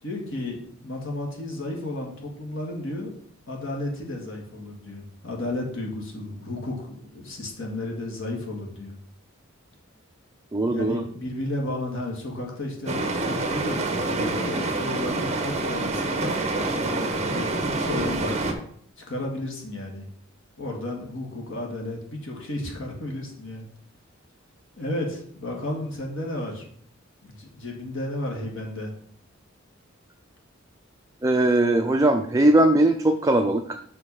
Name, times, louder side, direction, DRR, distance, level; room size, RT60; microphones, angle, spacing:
voice 1, 0.0-3.1 3.5-9.0 10.7-18.4 19.0-20.1 20.6-23.7 24.8-26.7 27.2-28.9, left 1 dB, 70° left, 0 dB, 1.9 m, -33 dB
voice 2, 10.5-11.0 31.2-33.8, right 1 dB, 15° right, 5 dB, 0.4 m, -20 dB
sound 1, 12.9-18.5, right 2 dB, 35° right, 1.0 m, -27 dB
6.1 x 5.0 x 5.5 m, 0.62 s
head